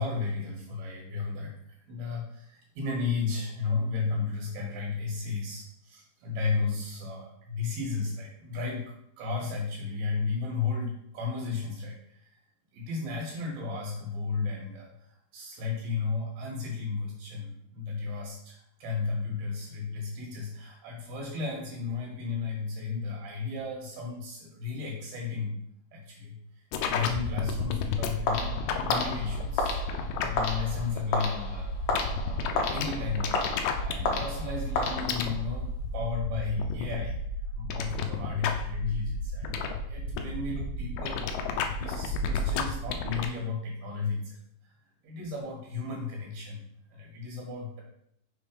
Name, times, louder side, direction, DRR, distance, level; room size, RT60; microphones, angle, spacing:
voice 1, 0.0-1.5 1.8-8.8 9.2-12.3 12.7-25.6 25.9-37.2 37.5-44.4 44.6-44.7 45.0-46.6 46.9-47.8, left 4 dB, 70° right, -2 dB, 3.1 m, -34 dB
sound 1, 26.7-43.3, left 5 dB, 90° left, 1.9 m, -32 dB
sound 2, 28.3-35.5, left 3 dB, 75° left, 1.8 m, -33 dB
6.2 x 3.5 x 5.0 m, 0.71 s
omnidirectional pair, 4.6 m